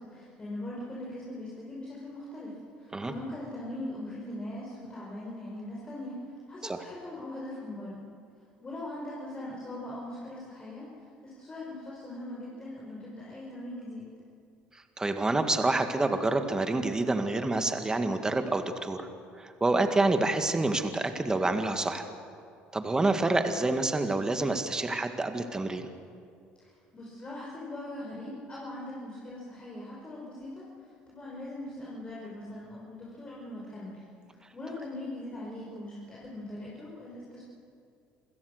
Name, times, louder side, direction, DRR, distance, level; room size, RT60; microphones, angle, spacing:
voice 1, 0.0-6.2 6.5-8.0 8.6-10.9 11.2-14.1 26.6-30.6 31.1-34.0 34.5-37.4, left 1 dB, 30° left, -5 dB, 5.4 m, -40 dB
voice 2, 15.0-19.1 19.4-22.1 22.7-25.9, right 2 dB, 15° right, 7 dB, 1.9 m, -27 dB
27.0 x 16.5 x 6.6 m, 2.4 s
supercardioid pair, 85°, 4 cm